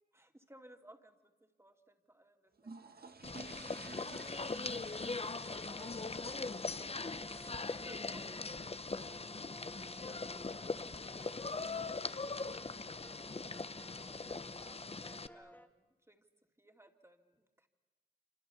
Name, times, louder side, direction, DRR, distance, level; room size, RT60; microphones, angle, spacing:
voice 1, 0.1-4.8 5.2-14.9 15.3-16.3 16.6-17.7, right 1 dB, 15° right, 5 dB, 2.7 m, -62 dB
sound 1, 2.6-9.2, right 3 dB, 75° right, 1.8 m, -55 dB
sound 2, 3.2-15.3, left 3 dB, 40° left, 0.9 m, -41 dB
sound 3, 4.6-15.7, left 1 dB, 10° left, 2.8 m, -58 dB
27.5 x 26.5 x 7.0 m, 1.2 s
cardioid pair, 50°, 16 cm